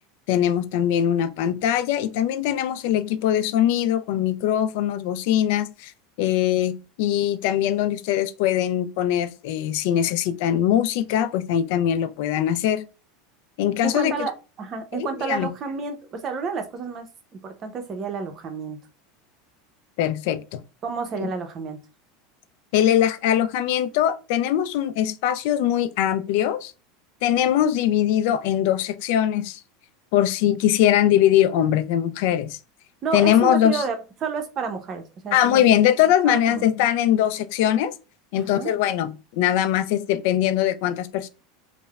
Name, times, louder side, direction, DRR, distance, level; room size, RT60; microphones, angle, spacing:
voice 1, 0.3-5.9 6.2-12.8 13.6-14.1 14.9-15.5 20.0-20.6 21.2-21.3 22.7-26.7 27.2-29.6 30.1-32.6 33.1-33.8 35.3-37.9 38.3-41.3, left 11 dB, 70° left, 0.3 m, -21 dB
voice 2, 13.8-14.3 14.6-17.1 17.3-18.8 20.8-21.8 33.0-35.9 36.3-36.7 38.4-38.7, right 5 dB, 40° right, 0.7 m, -30 dB
3.2 x 2.0 x 2.3 m
supercardioid pair, 105°, 0 cm